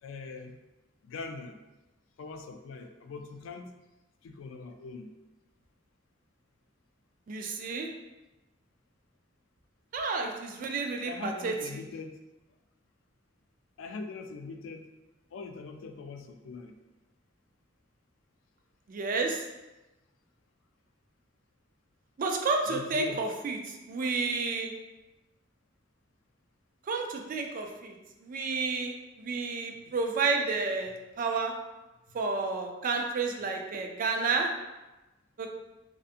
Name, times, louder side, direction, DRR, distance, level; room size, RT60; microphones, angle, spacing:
voice 1, 0.0-0.6 1.0-1.6 2.2-3.7 4.2-5.1 11.0-12.2 13.8-14.8 15.3-16.8 22.7-23.3 29.9-30.0, left 4 dB, 80° left, 5 dB, 0.3 m, -41 dB
voice 2, 7.3-7.9 9.9-11.8 18.9-19.4 22.2-23.6 23.9-24.7 26.9-27.9 28.2-31.5 32.1-34.5 35.4-35.5, right 4 dB, 45° right, 3 dB, 0.3 m, -31 dB
2.6 x 2.5 x 2.4 m, 1.0 s
head